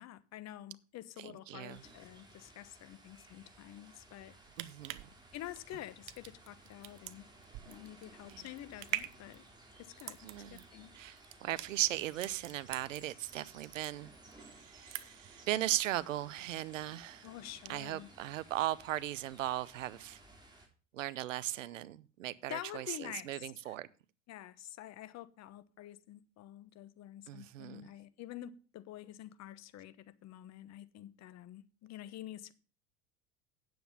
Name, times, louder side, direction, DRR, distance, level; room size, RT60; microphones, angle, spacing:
voice 1, 0.0-4.3 5.3-7.3 7.7-9.4 9.8-10.2 10.5-10.9 17.2-18.1 22.5-23.8 24.3-32.5, left 13 dB, 45° left, 1.0 m, -48 dB
voice 2, 1.2-1.8 4.6-5.0 8.3-8.4 10.2-10.6 10.9-14.1 14.6-17.3 17.7-20.2 20.9-23.9 27.3-27.8, right 14 dB, 85° right, 0.7 m, -37 dB
sound 1, 1.7-20.7, right 2 dB, 10° right, 3.8 m, -58 dB
sound 2, 4.3-13.3 13.6-14.4 14.7-15.3 15.7-15.8, right 16 dB, 60° right, 0.9 m, -44 dB
9.3 x 7.7 x 5.4 m
hypercardioid pair, 80°, 37 cm